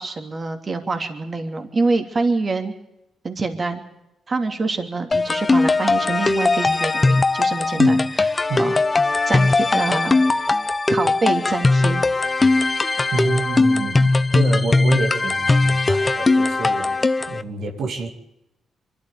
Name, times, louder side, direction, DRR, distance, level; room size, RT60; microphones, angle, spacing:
voice 1, 0.0-2.7 3.2-3.8 4.3-8.0 8.6-8.7 9.3-10.6 10.9-12.0, right 3 dB, 40° right, 6 dB, 3.1 m, -25 dB
sound 1, 5.1-17.4, left 3 dB, 30° left, 1.1 m, -19 dB
voice 2, 13.1-18.1, right 3 dB, 70° right, 3 dB, 2.7 m, -27 dB
24.0 x 13.5 x 9.5 m, 0.88 s
supercardioid pair, 65°, 0 cm